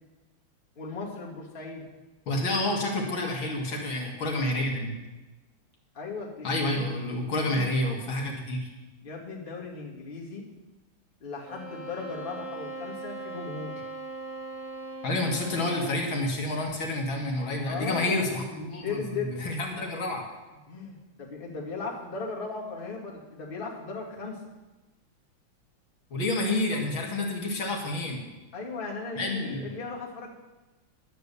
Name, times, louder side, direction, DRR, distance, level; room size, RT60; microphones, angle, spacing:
voice 1, 0.8-1.9 5.9-6.8 7.3-7.7 9.0-10.4 11.2-13.7 17.6-19.4 19.7-19.8 20.7-24.4 28.5-30.3, left 4 dB, 25° left, -3 dB, 2.2 m, -37 dB
voice 2, 2.3-4.9 6.4-8.7 15.0-20.2 26.1-28.2 29.2-29.7, left 1 dB, 65° left, 0 dB, 2.5 m, -29 dB
sound 1, 11.4-16.3, right 2 dB, 80° right, 5.6 m, -40 dB
11.0 x 9.3 x 6.8 m, 1.1 s
omnidirectional pair, 2.3 m